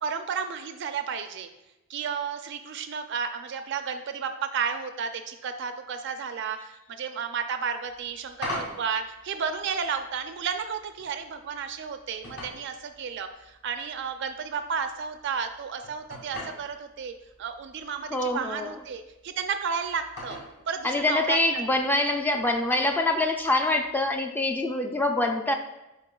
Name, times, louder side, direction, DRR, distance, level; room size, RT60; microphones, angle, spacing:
voice 1, 0.0-1.5 1.9-17.1 17.4-20.4 20.7-21.4, right 6 dB, 60° right, 8 dB, 0.4 m, -32 dB
sound 1, 7.8-24.2, left 1 dB, 60° left, 2.2 m, -45 dB
voice 2, 18.1-18.8 20.8-25.5, left 2 dB, 10° left, 4 dB, 0.4 m, -25 dB
10.5 x 4.3 x 2.3 m, 0.97 s
head